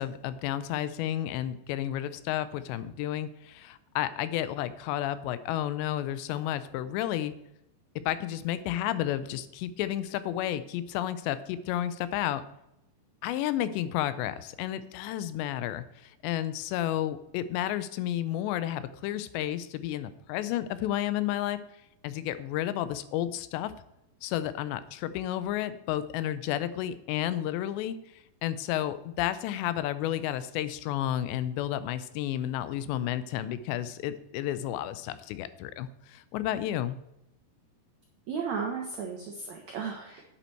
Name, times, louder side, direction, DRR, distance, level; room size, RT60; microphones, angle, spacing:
voice 1, 0.0-7.3 8.1-12.4 13.2-21.6 22.0-23.7 24.2-28.0 28.4-37.0, left 12 dB, 85° left, 14 dB, 2.8 m, -31 dB
voice 2, 38.3-40.2, right 6 dB, 85° right, 2 dB, 1.6 m, -34 dB
10.0 x 8.6 x 4.5 m, 0.82 s
omnidirectional pair, 5.1 m